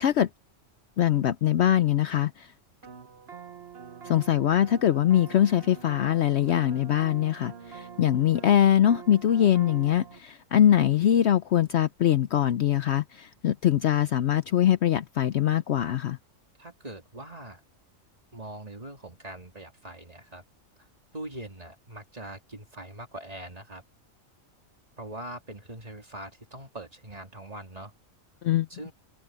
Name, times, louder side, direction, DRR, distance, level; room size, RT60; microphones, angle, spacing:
voice 1, 1.0-2.5 4.1-16.2 28.4-28.7, left 11 dB, 65° left, 0.8 m, -23 dB
sound 1, 2.8-10.2, right 7 dB, 50° right, 1.2 m, -45 dB
voice 2, 16.6-17.6 18.3-20.4 20.8-20.9 21.1-23.8 25.0-27.9 28.7-28.9, right 1 dB, 30° right, 2.8 m, -42 dB
omnidirectional pair, 1.4 m